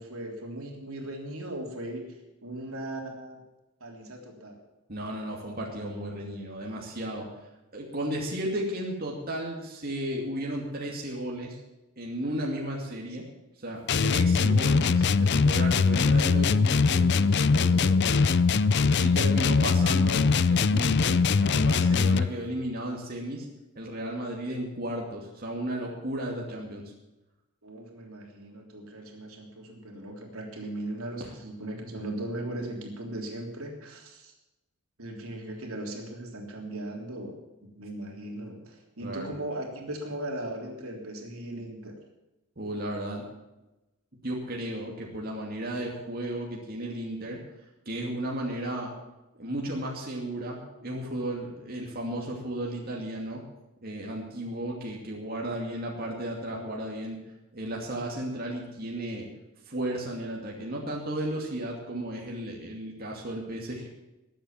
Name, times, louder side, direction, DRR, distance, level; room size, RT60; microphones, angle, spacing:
voice 1, 0.0-2.1 2.4-3.4 3.8-4.6 13.2-13.3 27.6-34.3 35.0-37.4 37.8-42.0, right 1 dB, 75° right, 2 dB, 3.4 m, -38 dB
voice 2, 4.9-7.3 7.7-11.6 12.0-13.2 13.6-18.3 19.0-23.5 23.8-26.8 31.2-31.3 39.0-39.3 42.6-43.3 44.2-47.4 47.9-48.9 49.4-53.4 53.8-57.2 57.5-59.3 59.7-63.9, right 1 dB, 45° right, -1 dB, 2.5 m, -34 dB
sound 1, 13.9-22.3, left 4 dB, 50° left, 0.5 m, -22 dB
21.0 x 8.2 x 7.3 m, 1.0 s
head